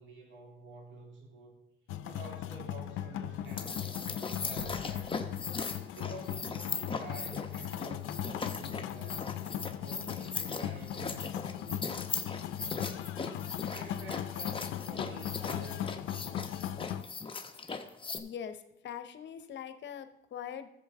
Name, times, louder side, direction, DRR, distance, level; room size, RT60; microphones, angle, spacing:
voice 1, 0.0-1.5 2.0-5.4 5.9-9.4 9.7-13.0 13.7-16.3, right 2 dB, 70° right, -1 dB, 3.1 m, -49 dB
sound 1, 1.9-17.0, left 11 dB, 85° left, 0.5 m, -38 dB
sound 2, 3.5-18.2, left 4 dB, 25° left, 0.9 m, -39 dB
sound 3, 4.6-6.4 6.7-6.8, equal, 15° right, 3.6 m, -52 dB
voice 2, 18.1-20.7, left 8 dB, 65° left, 10 dB, 0.9 m, -42 dB
13.5 x 7.5 x 3.6 m, 0.85 s
cardioid pair, 90°, 20 cm